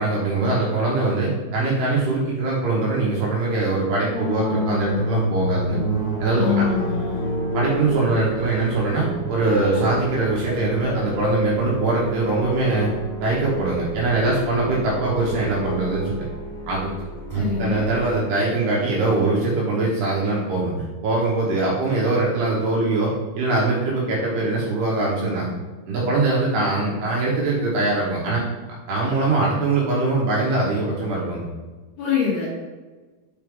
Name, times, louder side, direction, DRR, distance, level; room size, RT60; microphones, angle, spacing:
voice 1, 0.0-5.8 6.2-6.7 7.5-12.9 13.2-16.2 16.7-16.9 17.3-25.5 25.9-28.4 28.9-31.5, right 3 dB, 75° right, -5 dB, 2.4 m, -22 dB
voice 2, 4.0-5.0 6.3-7.2 17.3-17.8 32.0-32.5, left 8 dB, 65° left, -5 dB, 2.9 m, -25 dB
sound 1, 4.1-12.2, equal, 50° left, 3.1 m, -30 dB
sound 2, 4.7-18.2, equal, 90° left, 3.4 m, -31 dB
7.0 x 4.6 x 3.5 m, 1.3 s
omnidirectional pair, 6.0 m